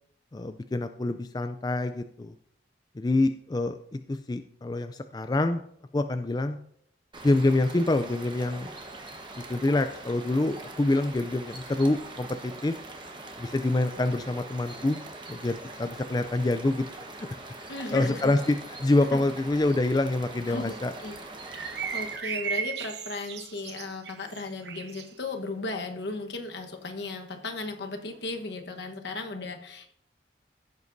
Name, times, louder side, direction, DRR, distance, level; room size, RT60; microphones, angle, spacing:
voice 1, 0.3-2.3 3.0-5.6 5.9-6.6 7.2-8.7 9.5-12.8 13.4-15.0 15.3-16.8 17.2-17.3 17.9-20.9, left 2 dB, 20° left, 8 dB, 0.3 m, -26 dB
sound 1, 7.1-22.2, right 2 dB, 25° right, 1.1 m, -43 dB
voice 2, 17.7-18.3 19.1-19.2 20.5-21.2 21.5-29.9, left 2 dB, 70° left, 4 dB, 1.2 m, -36 dB
sound 2, 21.5-25.1, right 7 dB, 65° right, 0.7 m, -35 dB
16.0 x 8.1 x 2.6 m, 0.68 s
head